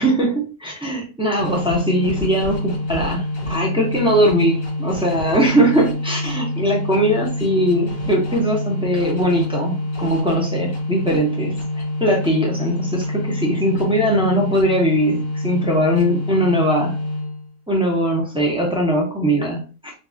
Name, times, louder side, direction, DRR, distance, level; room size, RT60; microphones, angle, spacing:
voice 1, 0.0-17.0 17.7-19.9, equal, 10° right, -2 dB, 0.3 m, -20 dB
sound 1, 1.4-17.5, left 1 dB, 80° left, 2.3 m, -26 dB
5.3 x 2.3 x 2.6 m, 0.35 s
omnidirectional pair, 1.8 m